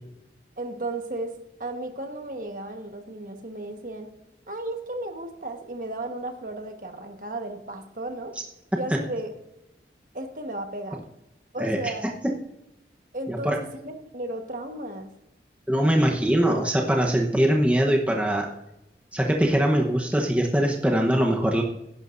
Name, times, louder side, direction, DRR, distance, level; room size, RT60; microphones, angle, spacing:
voice 1, 0.6-4.1 4.5-8.4 8.7-9.3 10.1-11.0 11.5-12.1 13.1-13.5 13.8-15.1, right 2 dB, 50° right, 5 dB, 1.3 m, -34 dB
voice 2, 13.3-13.6 15.7-18.5 19.1-21.6, right 1 dB, 10° right, 0 dB, 0.9 m, -22 dB
17.0 x 11.0 x 2.6 m, 0.87 s
head